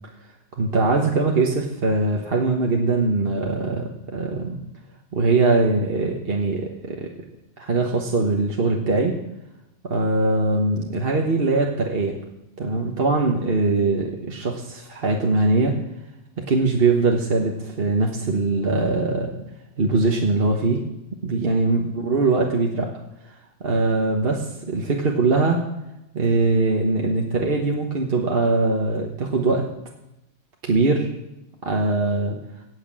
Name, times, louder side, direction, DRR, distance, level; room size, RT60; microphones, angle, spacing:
voice 1, 0.6-4.6 5.1-7.1 7.6-9.2 9.8-12.2 12.6-15.7 16.5-19.4 19.8-20.8 21.2-22.9 23.6-25.6 26.1-29.6 30.6-31.1 31.6-32.4, right 3 dB, 50° right, 0 dB, 1.4 m, -21 dB
17.0 x 6.6 x 7.6 m, 0.89 s
omnidirectional pair, 1.3 m